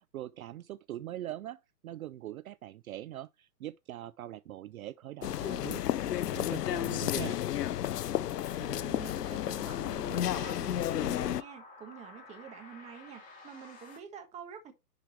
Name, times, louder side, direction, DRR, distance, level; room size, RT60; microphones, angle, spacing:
voice 1, 0.0-5.8 6.2-7.4, right 13 dB, 60° right, 0.5 m, -42 dB
sound 1, 5.2-11.4, left 12 dB, 75° left, 0.7 m, -32 dB
sound 2, 6.0-14.0, left 3 dB, 15° left, 2.4 m, -55 dB
voice 2, 8.6-14.7, right 8 dB, 15° right, 1.4 m, -47 dB
10.0 x 4.9 x 3.2 m
hypercardioid pair, 145°, 48 cm